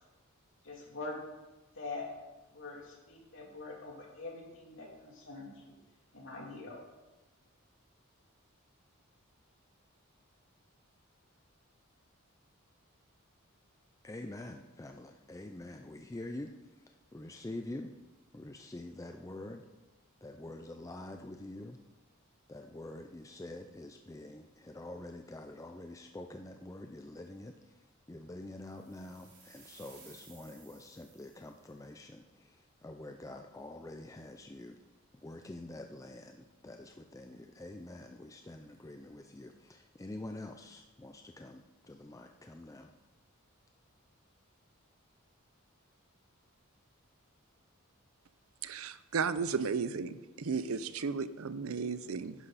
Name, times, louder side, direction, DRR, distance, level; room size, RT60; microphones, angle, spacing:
voice 1, 0.6-1.2 1.7-2.1 2.5-5.6 6.1-6.8, left 3 dB, 60° left, -1 dB, 3.0 m, -44 dB
voice 2, 14.0-17.9 18.3-19.7 20.2-21.8 22.5-34.8 35.1-42.9, left 1 dB, 15° left, 5 dB, 0.4 m, -46 dB
sound 1, 28.7-31.7, right 4 dB, 50° right, 4.2 m, -58 dB
voice 3, 48.6-52.3, right 5 dB, 80° right, 14 dB, 0.6 m, -34 dB
11.5 x 10.5 x 4.1 m, 1.1 s
head